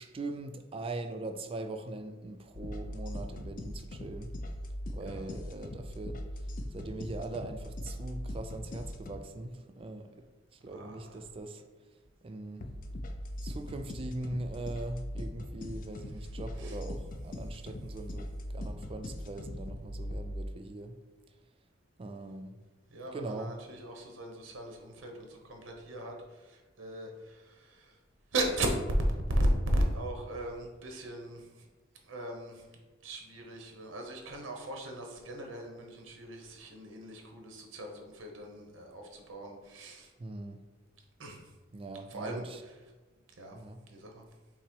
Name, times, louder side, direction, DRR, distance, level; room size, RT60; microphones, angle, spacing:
voice 1, 0.0-4.4 4.9-6.2 6.7-10.3 10.5-11.6 12.2-12.7 13.4-21.0 22.0-22.6 23.1-23.5 40.2-40.6 41.7-42.6 43.5-43.8, right 2 dB, 30° right, 0.3 m, -41 dB
sound 1, 2.5-9.2 12.6-20.4, left 1 dB, 45° left, 0.4 m, -40 dB
voice 2, 10.7-11.2 16.6-16.8 22.9-28.0 28.3-28.7 29.0-31.7 32.0-40.1 41.2-41.6 42.1-42.4 43.4-43.6 43.9-44.3, right 1 dB, 85° right, 0.9 m, -36 dB
5.7 x 2.0 x 4.5 m
head